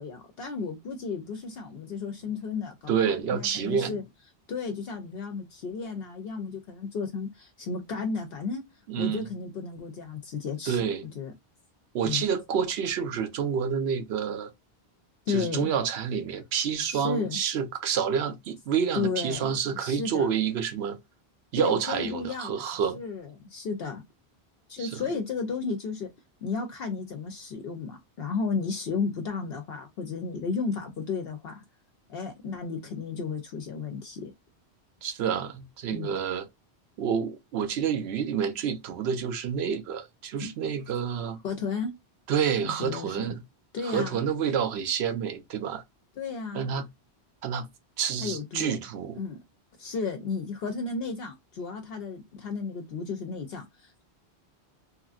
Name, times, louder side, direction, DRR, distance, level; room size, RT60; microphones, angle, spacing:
voice 1, 0.0-4.0 4.5-8.6 8.9-10.9 11.1-11.3 12.0-12.3 15.3-15.7 16.9-17.4 18.9-20.3 21.5-24.0 24.7-26.1 26.4-31.6 32.1-34.3 35.9-36.1 40.4-40.5 41.4-41.9 42.6-43.3 43.7-44.2 46.2-46.7 48.2-48.7 49.2-49.4 49.8-54.0, left 5 dB, 65° left, 0.8 m, -33 dB
voice 2, 2.9-4.0 8.9-9.3 10.7-11.0 11.9-14.5 15.3-21.0 21.5-23.0 24.8-25.0 35.0-36.5 37.0-41.4 42.3-43.4 43.8-45.8 46.5-46.9 47.4-47.7 48.0-49.2, right 7 dB, 75° right, 0.9 m, -28 dB
3.0 x 2.4 x 2.3 m
omnidirectional pair, 1.1 m